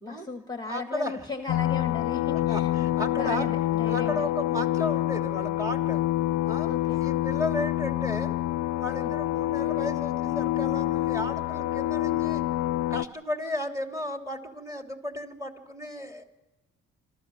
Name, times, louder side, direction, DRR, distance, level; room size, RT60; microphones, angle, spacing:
voice 1, 0.0-2.9 3.1-4.3 6.7-7.0 9.0-9.1, left 3 dB, 15° left, 7 dB, 1.3 m, -37 dB
voice 2, 0.6-1.2 2.3-3.5 3.9-6.0 6.4-8.3 8.7-12.4 12.9-16.2, left 1 dB, 10° right, 3 dB, 3.0 m, -34 dB
sound 1, 1.5-13.0, left 15 dB, 75° left, 0.6 m, -27 dB
26.5 x 14.5 x 7.1 m, 1.1 s
cardioid pair, 90°, 30 cm